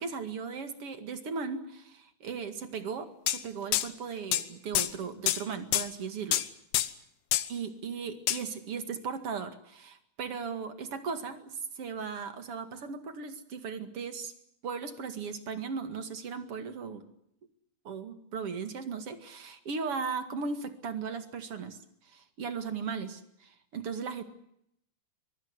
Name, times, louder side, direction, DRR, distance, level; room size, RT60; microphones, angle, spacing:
voice 1, 0.0-6.4 7.5-14.3 14.6-17.0 17.8-21.8 22.0-24.2, right 5 dB, 45° right, 8 dB, 2.0 m, -37 dB
sound 1, 3.3-3.4 3.7-3.9 4.3-4.4 4.8-4.9 5.3-5.4 5.7-5.9 6.3-6.5 6.7-6.9 7.3-7.5 8.3-8.4, left 14 dB, 70° left, 3.1 m, -27 dB
24.0 x 23.0 x 8.0 m, 0.75 s
omnidirectional pair, 5.4 m